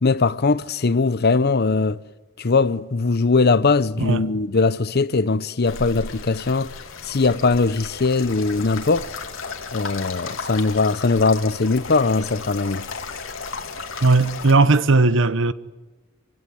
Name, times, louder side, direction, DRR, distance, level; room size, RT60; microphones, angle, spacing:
voice 1, 0.0-2.0 2.4-6.7 7.0-9.1 9.7-12.8, left 3 dB, 50° left, 0.7 m, -20 dB
sound 1, 5.6-14.5, left 4 dB, 70° left, 2.7 m, -34 dB
voice 2, 14.0-15.5, right 3 dB, 65° right, 1.0 m, -17 dB
26.0 x 16.5 x 9.8 m
head